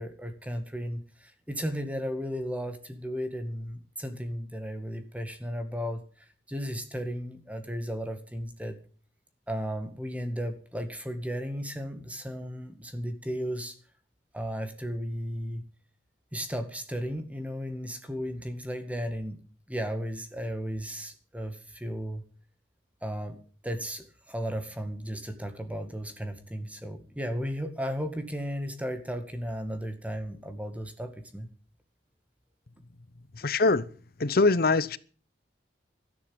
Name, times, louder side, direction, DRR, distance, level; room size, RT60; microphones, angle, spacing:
voice 1, 0.0-8.8 9.5-13.7 14.3-15.6 16.3-19.4 19.7-22.2 23.0-23.4 23.6-31.5, equal, 10° right, 2.0 m, -35 dB
voice 2, 33.4-33.9 34.2-35.0, left 3 dB, 55° left, 0.8 m, -23 dB
13.0 x 11.0 x 8.0 m
head